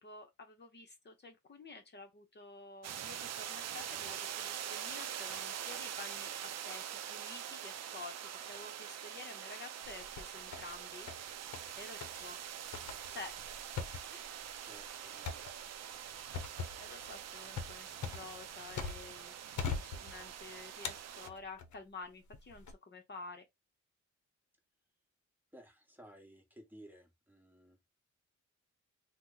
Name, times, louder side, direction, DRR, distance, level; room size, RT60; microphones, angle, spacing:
voice 1, 0.0-6.3 6.6-8.2 8.5-11.1 11.8-12.4 13.1-13.3 14.1-14.2 16.0-16.1 16.8-19.3 19.7-23.4, left 3 dB, 35° left, 0.8 m, -50 dB
sound 1, 2.8-21.3, right 9 dB, 60° right, 0.4 m, -44 dB
sound 2, 9.8-10.7 11.1-11.7 12.0-12.2 12.7-19.2 19.6-20.4 20.8-21.8 22.3-22.7, left 5 dB, 70° left, 0.7 m, -42 dB
voice 2, 14.6-15.5 15.9-16.0 25.5-27.9, equal, 5° right, 1.1 m, -57 dB
2.9 x 2.1 x 3.8 m
cardioid pair, 105°, 30 cm